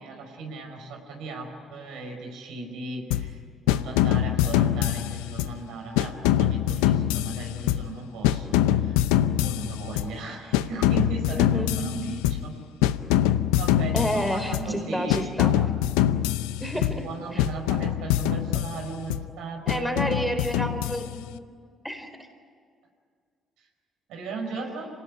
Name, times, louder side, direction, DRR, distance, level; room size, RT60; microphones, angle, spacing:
voice 1, 0.0-3.4 3.7-12.6 13.6-15.7 16.7-20.1 24.1-24.9, right 3 dB, 75° right, 2 dB, 5.0 m, -37 dB
sound 1, 3.1-3.4 3.7-5.6 6.0-8.0 8.2-10.2 10.5-12.5 12.8-14.8 15.1-17.1 17.4-19.3 19.7-21.3, left 12 dB, 85° left, 0.6 m, -24 dB
voice 2, 11.3-11.7 13.9-15.5 16.6-17.4 19.7-21.4 21.8-22.3, equal, ahead, 6 dB, 3.9 m, -30 dB
27.0 x 18.5 x 9.9 m, 2.1 s
hypercardioid pair, 55°, 0 cm